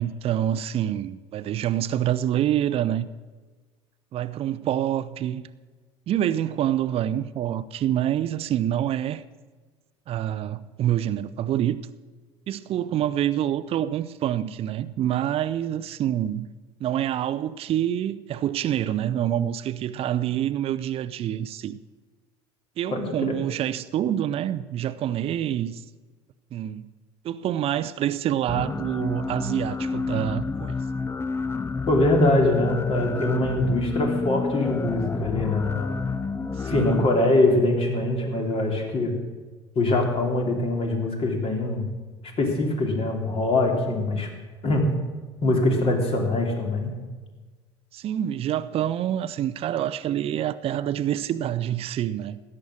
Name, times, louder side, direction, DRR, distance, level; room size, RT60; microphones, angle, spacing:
voice 1, 0.0-3.1 4.1-5.5 6.1-9.2 10.1-11.8 12.5-16.5 16.8-21.8 22.8-25.8 26.5-26.8 27.2-30.7 36.6-37.1 47.9-52.4, right 11 dB, 45° right, 0.5 m, -26 dB
voice 2, 22.9-23.3 31.9-36.0 36.7-39.1 39.7-41.9 42.4-44.3 44.6-44.9 45.4-46.9, left 2 dB, 40° left, 3.1 m, -23 dB
sound 1, 28.5-37.1, left 4 dB, 15° left, 0.6 m, -30 dB
13.5 x 9.7 x 6.3 m
hypercardioid pair, 65°, 14 cm